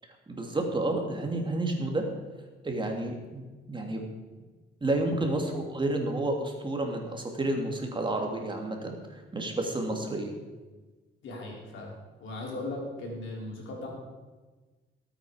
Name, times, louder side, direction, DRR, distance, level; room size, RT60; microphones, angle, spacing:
voice 1, 0.3-2.0 2.6-4.0 4.8-10.3, right 2 dB, 25° right, 2 dB, 2.6 m, -30 dB
voice 2, 11.2-11.9 12.2-13.9, left 2 dB, 75° left, -2 dB, 4.6 m, -38 dB
18.5 x 8.9 x 5.1 m, 1.3 s
cardioid pair, 90°, 20 cm